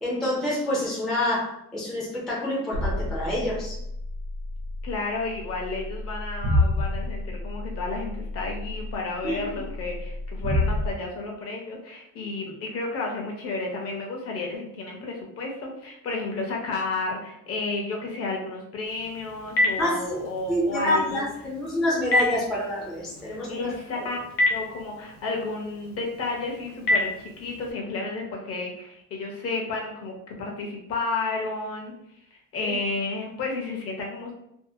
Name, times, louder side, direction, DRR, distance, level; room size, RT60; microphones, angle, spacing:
voice 1, 0.0-3.8 9.2-9.4 19.8-20.2 20.5-24.1 32.6-32.7, left 1 dB, ahead, -6 dB, 0.4 m, -27 dB
sound 1, 2.7-10.9, left 1 dB, 80° right, 0.8 m, -29 dB
voice 2, 4.8-21.3 23.3-24.2 24.5-31.9 32.5-34.3, left 3 dB, 45° left, 0 dB, 0.7 m, -32 dB
Telephone, 18.9-27.7, left 1 dB, 85° left, 0.9 m, -30 dB
2.7 x 2.4 x 2.6 m, 0.80 s
cardioid pair, 170°, 35 cm